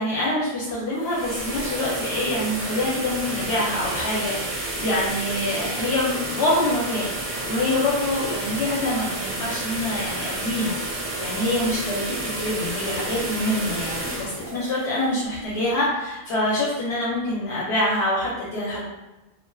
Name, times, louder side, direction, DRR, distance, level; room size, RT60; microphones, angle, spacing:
voice 1, 0.0-7.1 7.4-10.8 11.2-18.8, left 1 dB, 85° left, -6 dB, 0.9 m, -25 dB
sound 1, 0.8-15.7, right 2 dB, 45° right, 0.6 m, -30 dB
2.4 x 2.3 x 2.2 m, 1.0 s
omnidirectional pair, 1.1 m